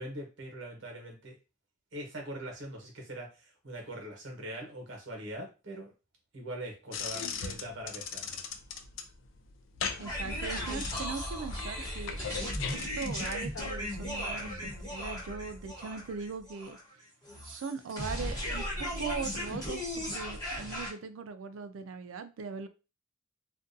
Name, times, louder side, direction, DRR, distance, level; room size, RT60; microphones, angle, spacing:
voice 1, 0.0-1.4 1.9-5.9 6.3-8.4, right 1 dB, 65° right, 1 dB, 1.0 m, -42 dB
sound 1, 6.9-13.7, left 6 dB, 75° left, 0.4 m, -39 dB
sound 2, 10.0-20.9, equal, 20° left, 1.0 m, -36 dB
voice 2, 10.0-12.2 12.7-16.8 17.4-22.7, right 5 dB, 85° right, 9 dB, 0.4 m, -40 dB
2.5 x 2.2 x 2.5 m, 0.30 s
head